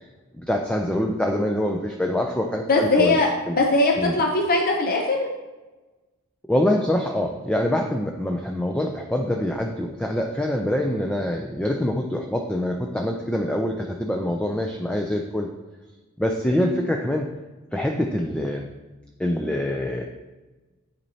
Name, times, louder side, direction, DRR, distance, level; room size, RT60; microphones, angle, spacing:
voice 1, 0.4-3.2 3.5-3.6 4.0-4.2 6.5-15.5 16.2-17.3 17.7-18.7 19.2-20.0, left 1 dB, 5° left, 2 dB, 0.4 m, -25 dB
voice 2, 2.7-3.3 3.6-5.3 16.6-16.8, left 2 dB, 40° left, 0 dB, 0.6 m, -20 dB
10.5 x 4.4 x 2.8 m, 1.2 s
head